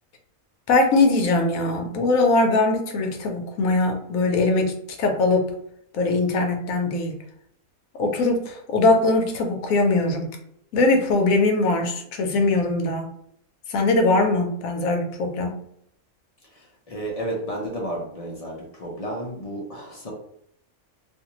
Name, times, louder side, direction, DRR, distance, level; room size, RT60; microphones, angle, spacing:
voice 1, 0.7-5.5 5.9-7.2 8.0-10.4 10.7-13.1 13.7-15.6, left 2 dB, 75° left, 3 dB, 1.0 m, -21 dB
voice 2, 16.9-20.1, right 1 dB, 40° left, -2 dB, 0.5 m, -32 dB
2.6 x 2.5 x 2.9 m, 0.72 s
omnidirectional pair, 1.5 m